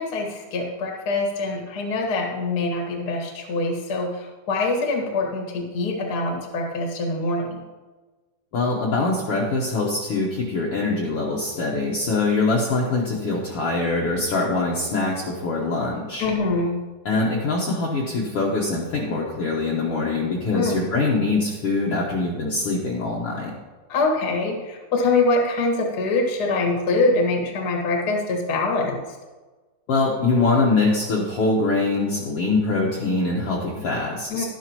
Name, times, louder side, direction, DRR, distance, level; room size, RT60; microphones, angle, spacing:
voice 1, 0.0-7.6 16.2-16.7 20.5-20.8 23.9-29.0 34.3-34.4, left 3 dB, 40° left, 1 dB, 1.6 m, -24 dB
voice 2, 8.5-16.3 17.1-23.5 29.9-34.4, left 3 dB, 60° left, -3 dB, 1.8 m, -23 dB
11.5 x 11.5 x 3.0 m, 1.3 s
omnidirectional pair, 3.8 m